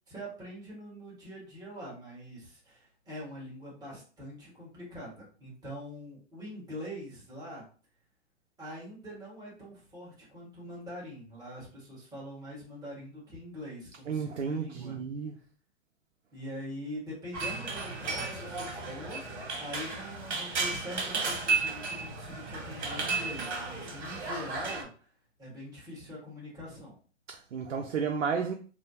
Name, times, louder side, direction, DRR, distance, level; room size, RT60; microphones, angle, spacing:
voice 1, 0.1-7.6 8.6-15.0 16.3-19.2 19.6-25.1 25.4-27.0, equal, 10° right, 1.4 m, -43 dB
voice 2, 14.1-15.3 27.3-28.5, right 6 dB, 90° right, 0.5 m, -32 dB
sound 1, 17.3-24.8, right 4 dB, 65° right, 1.3 m, -34 dB
3.2 x 2.2 x 2.7 m
hypercardioid pair, 125°, 36 cm